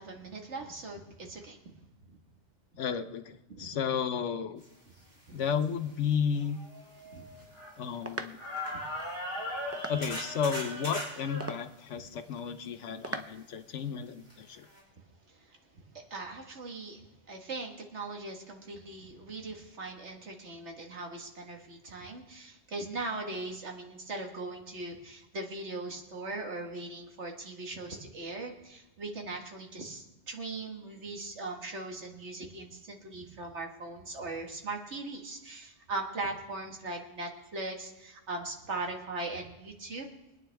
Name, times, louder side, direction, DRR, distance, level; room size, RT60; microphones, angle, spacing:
voice 1, 0.0-1.7 3.5-3.8 5.3-5.4 7.1-7.3 8.7-8.8 15.3-40.1, right 2 dB, 70° right, 2 dB, 1.9 m, -40 dB
voice 2, 2.8-4.6 5.3-6.6 7.8-8.4 9.9-14.7, left 7 dB, 80° left, 10 dB, 1.1 m, -33 dB
sound 1, 5.6-5.7 6.3-8.1 8.4-11.5 14.3-14.4 14.7-14.8, left 1 dB, 15° left, 4.9 m, -38 dB
sound 2, 6.8-13.8, right 2 dB, 20° right, 0.5 m, -45 dB
24.0 x 9.4 x 3.4 m, 1.0 s
omnidirectional pair, 1.2 m